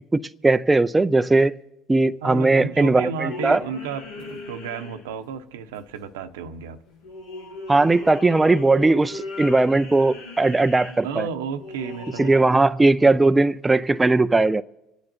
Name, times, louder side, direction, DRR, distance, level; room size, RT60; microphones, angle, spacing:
voice 1, 0.1-1.5 1.9-3.6 7.7-11.3 12.2-14.6, right 2 dB, 15° right, 0.5 m, -18 dB
voice 2, 2.2-6.8 11.0-12.3 13.1-13.2, right 6 dB, 85° right, 1.0 m, -32 dB
sound 1, 3.3-5.4 5.7-6.4 6.9-12.6, left 3 dB, 80° left, 2.3 m, -38 dB
26.0 x 9.5 x 4.5 m
hypercardioid pair, 75°, 0 cm